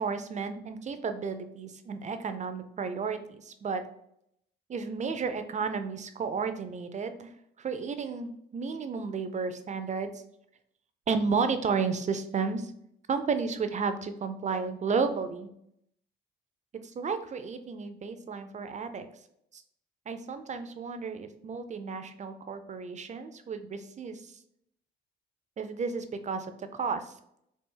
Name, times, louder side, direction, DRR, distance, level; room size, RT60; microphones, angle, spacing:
voice 1, 0.0-3.8 4.7-7.3 7.6-10.1 11.1-12.7 13.1-15.5 17.0-19.1 19.5-19.6 20.1-24.4 25.6-27.1, right 5 dB, 35° right, 9 dB, 0.4 m, -32 dB
4.1 x 2.4 x 3.7 m, 0.73 s
cardioid pair, 90°, 20 cm